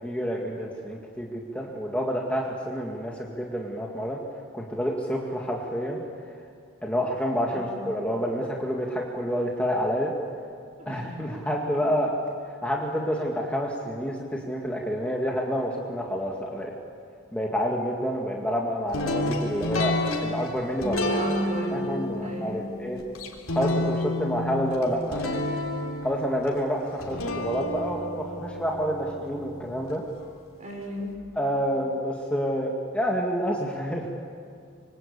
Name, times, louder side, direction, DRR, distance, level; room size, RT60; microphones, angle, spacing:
voice 1, 0.0-4.2 4.5-6.3 6.8-10.1 10.9-12.1 12.5-16.7 17.3-20.0 20.2-21.2 21.7-23.0 23.5-25.6 26.0-30.0 31.4-34.1, equal, 5° left, -1 dB, 2.1 m, -28 dB
voice 2, 7.5-7.9 10.8-11.2 21.0-22.7 30.6-31.2, equal, 35° right, 0 dB, 6.9 m, -36 dB
sound 1, 18.9-30.0, left 1 dB, 85° left, 3.6 m, -30 dB
25.5 x 25.0 x 8.4 m, 2.4 s
head